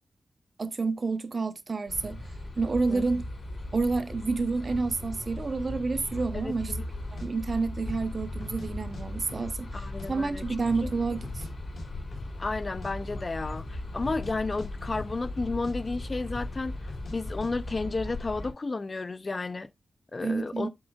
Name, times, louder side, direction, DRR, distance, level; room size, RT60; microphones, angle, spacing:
voice 1, 0.6-2.2 2.6-3.2 3.7-6.7 7.1-11.4 20.2-20.7, right 4 dB, 40° right, 0.8 m, -29 dB
sound 1, 1.9-18.5, left 1 dB, 55° left, 4.2 m, -38 dB
voice 2, 6.4-6.8 9.7-10.4 10.8-10.9 12.4-16.8 17.1-19.7 20.1-20.7, left 3 dB, 30° left, 0.5 m, -32 dB
sound 2, 6.5-6.7 7.2-7.3 7.8-8.1 8.4-9.0 9.3-10.1 10.4-10.5 10.7-11.5 11.8-11.9 12.1-12.3 12.6-12.9 13.4-13.7 14.0-14.3 14.6-15.4 15.6-15.8 16.3-16.6 16.9-17.2 17.4-17.5, left 3 dB, 80° left, 4.1 m, -44 dB
7.8 x 7.7 x 2.3 m
wide cardioid pair, 145°, 0 cm